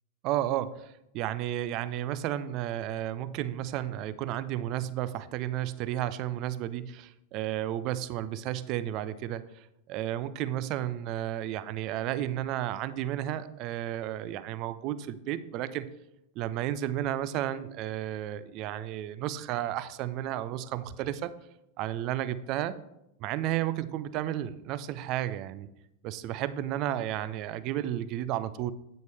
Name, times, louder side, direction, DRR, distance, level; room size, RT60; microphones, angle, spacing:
voice 1, 0.2-15.9 16.4-21.3 21.8-22.8 23.2-25.7 26.0-28.7, right 12 dB, 40° right, 14 dB, 0.5 m, -32 dB
9.1 x 7.8 x 3.4 m, 0.85 s
figure-of-eight pair, 90°, 0 cm